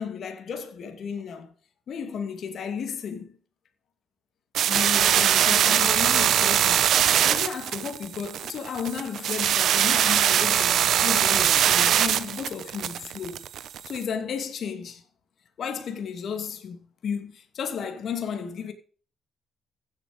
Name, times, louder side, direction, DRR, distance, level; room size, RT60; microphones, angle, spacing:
voice 1, 0.0-1.5 1.9-3.3 4.7-13.4 13.9-15.0 15.6-18.7, left 7 dB, 60° left, 2.6 m, -33 dB
sound 1, 4.5-14.0, right 10 dB, 70° right, 1.1 m, -22 dB
15.5 x 8.5 x 5.3 m
cardioid pair, 90°, 0 cm